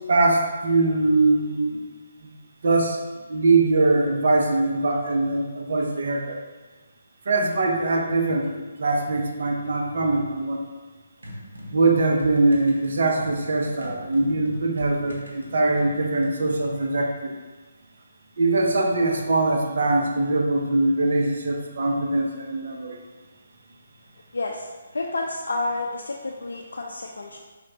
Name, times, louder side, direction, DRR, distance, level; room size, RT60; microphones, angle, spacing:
voice 1, 0.1-1.8 2.2-2.3 2.6-3.0 3.3-6.4 7.3-10.6 11.7-17.4 18.4-23.0, right 2 dB, 60° right, 1 dB, 0.7 m, -22 dB
sound 1, 11.2-16.4, equal, 85° right, 0.9 m, -41 dB
voice 2, 24.3-27.4, left 2 dB, 75° left, -1 dB, 0.4 m, -30 dB
4.7 x 3.2 x 2.9 m, 1.3 s
figure-of-eight pair, 150°, 0 cm